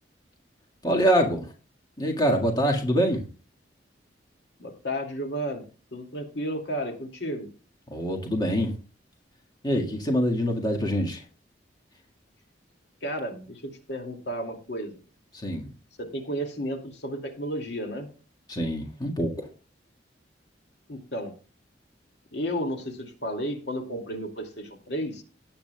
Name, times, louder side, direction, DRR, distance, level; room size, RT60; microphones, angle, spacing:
voice 1, 0.8-1.5 2.0-3.3 7.9-8.7 9.6-11.2 15.3-15.7 18.5-19.5, equal, 25° left, 1.8 m, -25 dB
voice 2, 4.6-5.6 5.9-7.5 13.0-14.9 16.0-18.1 20.9-21.3 22.3-25.2, equal, 70° left, 2.4 m, -32 dB
18.0 x 8.7 x 2.3 m
head